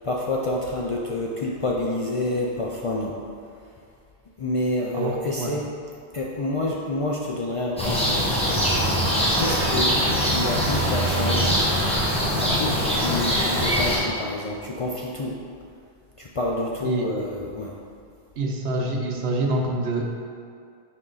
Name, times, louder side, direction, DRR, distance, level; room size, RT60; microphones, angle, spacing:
voice 1, 0.0-3.2 4.4-5.7 6.1-8.3 8.8-8.9 9.4-11.6 12.4-15.4 16.2-17.7, left 2 dB, 50° left, -2 dB, 0.4 m, -28 dB
voice 2, 4.9-5.6 16.8-17.1 18.4-20.0, right 2 dB, 75° right, 1 dB, 1.0 m, -26 dB
sound 1, 7.8-14.0, equal, 5° left, 1.1 m, -22 dB
6.2 x 4.5 x 3.9 m, 2.3 s
omnidirectional pair, 1.0 m